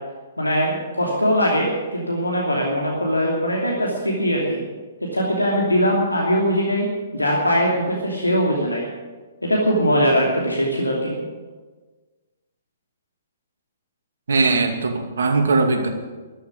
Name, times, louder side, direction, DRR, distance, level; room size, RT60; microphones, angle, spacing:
voice 1, 0.4-4.6 5.1-6.9 7.1-8.9 9.4-11.2, equal, 85° left, -2 dB, 2.8 m, -21 dB
voice 2, 14.3-15.9, right 3 dB, 60° right, 4 dB, 2.4 m, -20 dB
14.0 x 12.0 x 8.5 m, 1.4 s
figure-of-eight pair, 120°, 0 cm